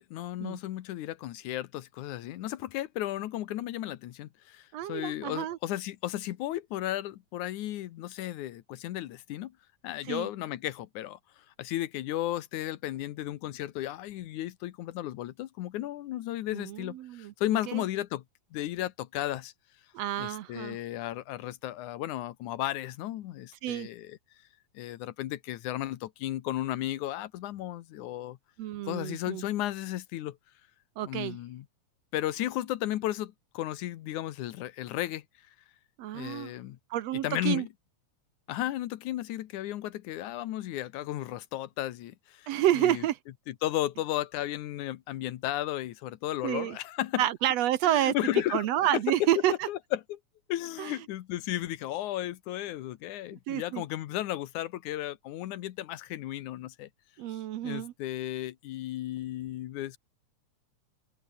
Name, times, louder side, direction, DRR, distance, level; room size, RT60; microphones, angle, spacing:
voice 1, 0.0-9.5 9.8-11.2 11.6-18.2 18.5-19.5 20.2-24.2 24.7-28.4 28.9-30.4 31.0-31.7 32.1-35.2 36.1-36.8 37.2-37.7 38.5-42.5 42.8-43.0 43.5-47.2 47.8-48.7 49.7-50.2 50.5-56.9 57.6-60.0, left 14 dB, 80° left, 2.5 m, -34 dB
voice 2, 4.7-5.6 10.1-10.3 16.5-17.3 17.7-17.8 19.9-20.8 23.6-23.9 28.6-29.4 31.0-31.4 36.0-36.5 36.9-37.7 42.5-43.2 46.4-46.8 47.2-48.1 48.5-49.7 50.8-50.9 53.5-53.8 57.2-57.9, right 12 dB, 70° right, 1.9 m, -29 dB
omnidirectional pair, 3.4 m